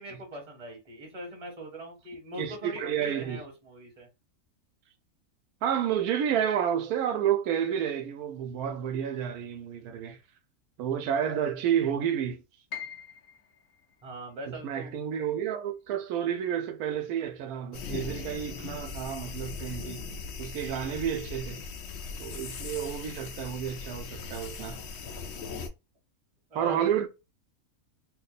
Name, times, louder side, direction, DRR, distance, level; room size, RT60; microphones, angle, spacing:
voice 1, 0.0-4.1 14.0-15.2 20.8-20.9 26.5-26.8, right 1 dB, 25° right, 1.2 m, -42 dB
voice 2, 2.4-3.4 5.6-10.2 10.8-12.4 14.5-20.1 20.4-21.6 22.2-24.8 26.5-27.1, right 9 dB, 85° right, 1.1 m, -30 dB
Piano, 12.7-18.6 19.0-20.1 20.5-20.6 21.3-21.7, left 8 dB, 90° left, 1.2 m, -48 dB
sound 1, 17.7-25.7, left 5 dB, 60° left, 0.7 m, -39 dB
3.0 x 2.1 x 4.0 m
omnidirectional pair, 1.5 m